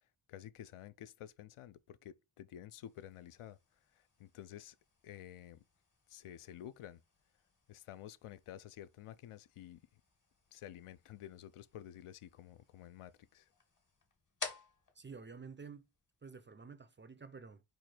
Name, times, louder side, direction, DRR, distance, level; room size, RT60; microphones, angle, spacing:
voice 1, 0.3-3.6 3.9-4.8 5.0-5.6 6.1-7.0 7.7-9.8 10.5-13.5, left 11 dB, 80° left, 0.6 m, -51 dB
sound 1, 2.7-16.3, left 4 dB, 40° left, 1.6 m, -54 dB
voice 2, 14.9-15.9 16.2-17.6, right 5 dB, 25° right, 0.4 m, -50 dB
4.6 x 2.6 x 4.3 m
cardioid pair, 80°, 49 cm